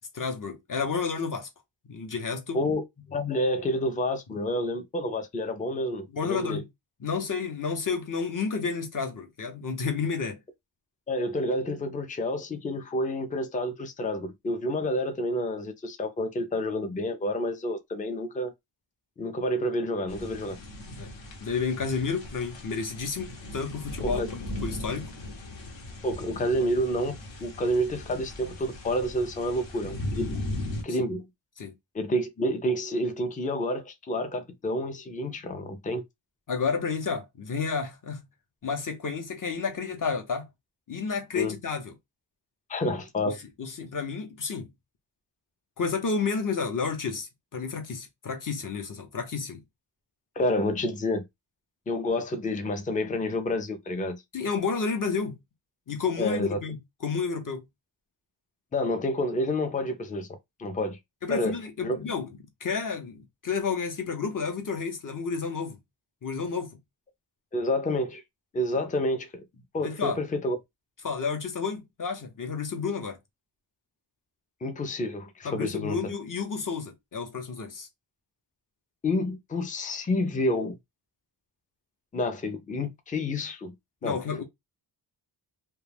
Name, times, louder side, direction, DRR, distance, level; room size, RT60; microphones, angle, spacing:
voice 1, 0.1-1.5 1.8-2.6 6.1-6.7 7.0-10.4 21.0-21.1 21.4-25.1 30.9-31.0 31.6-31.7 36.5-38.2 38.6-40.5 40.9-41.9 43.3-44.7 45.8-49.6 54.3-55.4 55.9-56.8 57.0-57.6 61.2-62.3 62.6-65.8 66.2-66.8 69.8-70.2 71.0-73.2 75.4-77.9 84.0-84.4, left 5 dB, 40° left, 0.7 m, -31 dB
voice 2, 2.5-6.6 11.1-18.5 19.2-20.6 24.0-24.3 26.0-30.4 30.8-31.2 31.9-36.0 41.3-41.6 42.7-43.4 50.4-51.2 51.9-54.2 56.2-56.6 58.7-60.3 60.6-61.0 61.3-61.6 61.8-62.1 67.5-68.2 68.5-69.4 69.7-70.6 74.6-76.0 79.0-80.8 82.1-83.7 84.0-84.2, left 1 dB, 20° left, 0.4 m, -29 dB
sound 1, 20.1-30.8, left 1 dB, 65° left, 0.9 m, -38 dB
2.2 x 2.2 x 3.3 m
wide cardioid pair, 125°, 48 cm